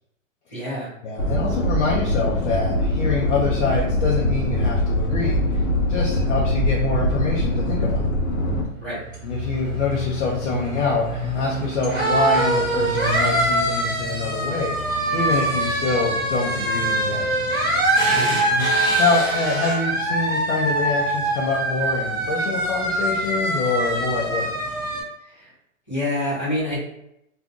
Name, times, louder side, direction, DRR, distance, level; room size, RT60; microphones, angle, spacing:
voice 1, 0.5-0.9 8.8-9.0 18.1-18.4 25.2-25.5 25.9-26.8, left 1 dB, 5° left, -22 dB, 0.4 m, -27 dB
voice 2, 1.0-5.6 5.9-8.0 9.2-14.7 15.1-17.3 18.5-24.5, left 3 dB, 55° left, -4 dB, 0.7 m, -25 dB
sound 1, 1.2-8.6, left 1 dB, 90° left, 1.0 m, -22 dB
sound 2, 8.6-25.0, right 1 dB, 10° right, 0.8 m, -23 dB
2.5 x 2.3 x 3.6 m, 0.81 s
hypercardioid pair, 175°, 41 cm